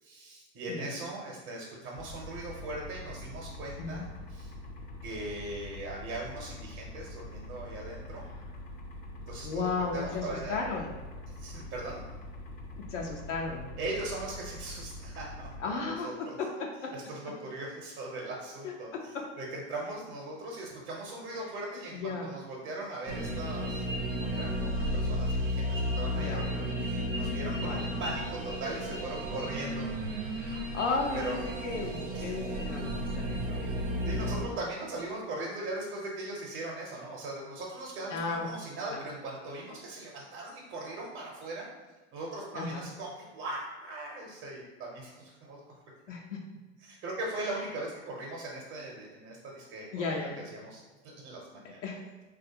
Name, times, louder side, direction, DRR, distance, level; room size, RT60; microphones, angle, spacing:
voice 1, 0.0-4.5 5.0-8.2 9.3-10.6 11.4-12.0 13.8-16.3 16.9-29.9 31.1-31.4 32.1-32.3 34.0-41.7 42.1-45.8 46.8-51.8, right 2 dB, 40° right, -3 dB, 0.8 m, -40 dB
sound 1, 1.9-15.7, left 1 dB, 25° left, 0.4 m, -44 dB
voice 2, 9.4-10.9 12.9-13.7 15.6-16.1 16.4-16.9 18.6-19.2 21.9-22.3 26.1-26.5 27.6-27.9 30.3-33.7 38.1-38.5 38.9-39.0 42.5-42.8 46.1-46.4 49.9-50.5 51.6-52.0, left 4 dB, 85° left, 0 dB, 0.6 m, -35 dB
sound 2, 23.1-34.4, equal, 90° right, 0.7 m, -33 dB
3.2 x 2.4 x 2.8 m, 1.2 s
hypercardioid pair, 105°, 36 cm